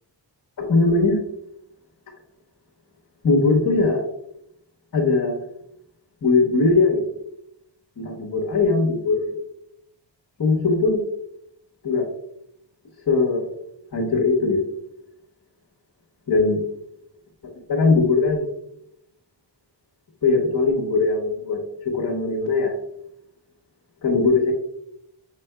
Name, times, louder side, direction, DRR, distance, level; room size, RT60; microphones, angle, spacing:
voice 1, 0.6-1.2 3.2-4.0 4.9-5.4 6.2-7.0 8.0-9.2 10.4-11.0 11.8-12.1 13.1-13.5 13.9-14.6 16.3-16.6 17.7-18.5 20.2-22.7 24.0-24.5, left 3 dB, 45° left, -2 dB, 1.0 m, -20 dB
5.2 x 3.7 x 2.2 m, 0.75 s
wide cardioid pair, 115°, 43 cm